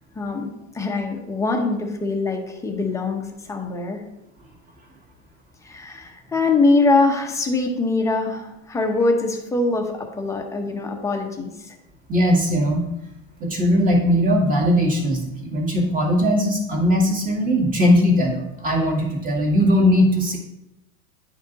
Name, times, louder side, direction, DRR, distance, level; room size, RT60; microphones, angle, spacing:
voice 1, 0.1-4.0 5.6-11.8, left 3 dB, 10° left, 3 dB, 0.8 m, -23 dB
voice 2, 12.1-12.9 13.4-20.4, equal, 20° right, -1 dB, 2.0 m, -19 dB
10.5 x 5.0 x 4.0 m, 0.89 s
supercardioid pair, 150°, 38 cm